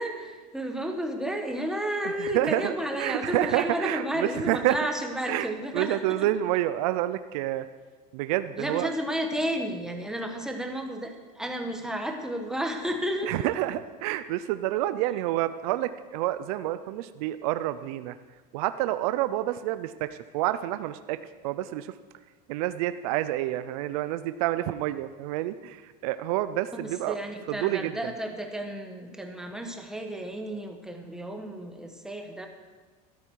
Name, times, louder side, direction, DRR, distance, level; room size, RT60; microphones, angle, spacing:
voice 1, 0.0-6.3 8.6-13.4 26.7-32.5, right 1 dB, 5° right, 3 dB, 1.3 m, -32 dB
voice 2, 2.0-4.8 5.3-7.7 8.1-8.9 13.2-18.2 18.5-21.9 22.5-27.2 27.5-28.0, right 14 dB, 70° right, 12 dB, 0.6 m, -28 dB
13.5 x 12.5 x 4.7 m, 1.4 s
supercardioid pair, 145°, 20 cm